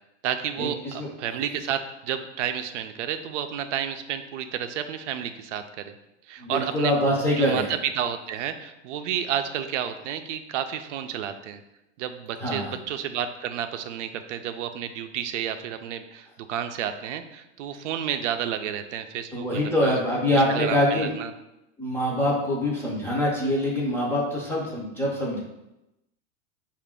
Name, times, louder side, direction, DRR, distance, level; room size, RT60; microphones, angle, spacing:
voice 1, 0.2-5.9 6.3-7.0 7.4-11.6 12.0-19.9 20.3-21.3, right 9 dB, 90° right, 8 dB, 0.5 m, -31 dB
voice 2, 6.4-7.7 12.4-12.7 19.3-21.1 21.8-25.4, left 1 dB, 5° left, -4 dB, 0.5 m, -24 dB
4.9 x 2.5 x 3.6 m, 0.90 s
supercardioid pair, 160°, 35 cm